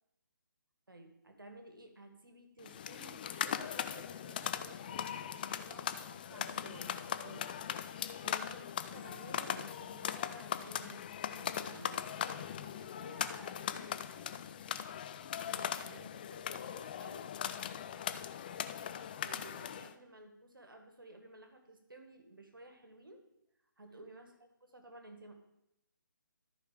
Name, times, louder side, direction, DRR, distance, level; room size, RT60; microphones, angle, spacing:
voice 1, 0.9-7.5 8.2-11.0 11.3-12.0 15.4-17.2 19.2-23.2 23.8-24.4 24.7-25.3, right 2 dB, 90° right, 5 dB, 1.7 m, -54 dB
sound 1, 2.6-19.9, left 9 dB, 25° left, 0.4 m, -40 dB
voice 2, 11.5-11.9 12.3-14.4 23.8-24.0, left 2 dB, ahead, -10 dB, 2.7 m, -55 dB
13.5 x 4.7 x 5.0 m, 0.86 s
figure-of-eight pair, 150°, 11 cm